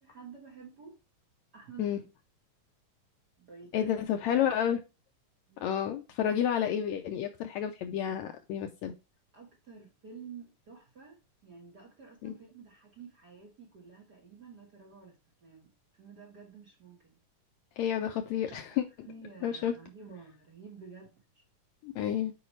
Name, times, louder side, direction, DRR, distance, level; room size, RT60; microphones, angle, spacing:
voice 1, 0.0-1.0 1.5-2.0 3.4-4.0 4.3-4.5 5.5-5.8 9.3-17.2 18.5-21.4, right 5 dB, 45° right, 1.4 m, -51 dB
voice 2, 3.7-4.8 5.6-8.9 12.2-12.4 17.8-18.8 19.4-19.7 21.8-22.3, left 9 dB, 75° left, 1.7 m, -30 dB
8.6 x 5.0 x 3.1 m
omnidirectional pair, 3.7 m